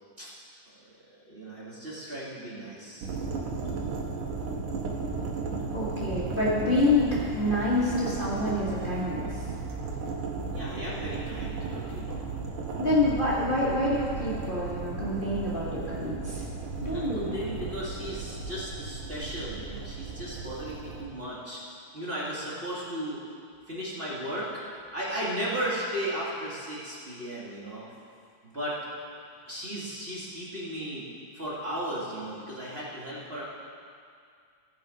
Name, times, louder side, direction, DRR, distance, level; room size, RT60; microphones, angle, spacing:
voice 1, 1.2-3.1 10.5-12.2 16.9-21.6 21.9-23.2 23.7-24.6 24.9-27.8 28.4-28.8 29.5-31.0 31.3-33.4, right 1 dB, 25° right, -7 dB, 1.4 m, -35 dB
sound 1, 3.0-21.0, right 4 dB, 80° right, 2.6 m, -35 dB
voice 2, 5.7-9.3 12.8-16.4 16.8-17.3, left 2 dB, 90° left, -8 dB, 0.4 m, -27 dB
14.5 x 5.9 x 5.2 m, 2.2 s
omnidirectional pair, 3.6 m